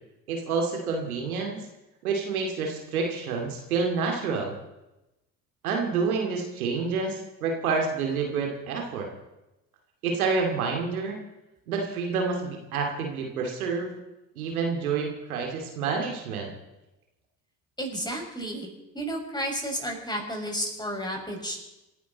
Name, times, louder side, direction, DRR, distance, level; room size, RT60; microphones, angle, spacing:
voice 1, 0.3-1.6 2.0-4.6 5.6-9.1 10.0-11.2 11.7-13.9 14.4-16.5, right 4 dB, 85° right, 2 dB, 2.5 m, -28 dB
voice 2, 17.8-18.7 18.9-21.6, equal, 10° left, 1 dB, 5.8 m, -32 dB
27.0 x 11.0 x 4.1 m, 0.96 s
hypercardioid pair, 60°, 42 cm